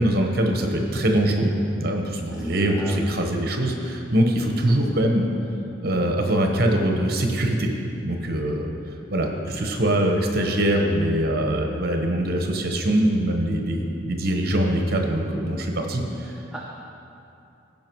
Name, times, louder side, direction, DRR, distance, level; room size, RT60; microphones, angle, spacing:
voice 1, 0.0-1.5 1.8-5.3 5.8-7.7 8.0-8.7 9.1-16.3, right 1 dB, 50° right, 2 dB, 1.1 m, -23 dB
voice 2, 2.3-3.2 4.7-5.0 16.2-16.6, equal, ahead, -4 dB, 0.6 m, -40 dB
16.5 x 5.5 x 4.6 m, 2.8 s
head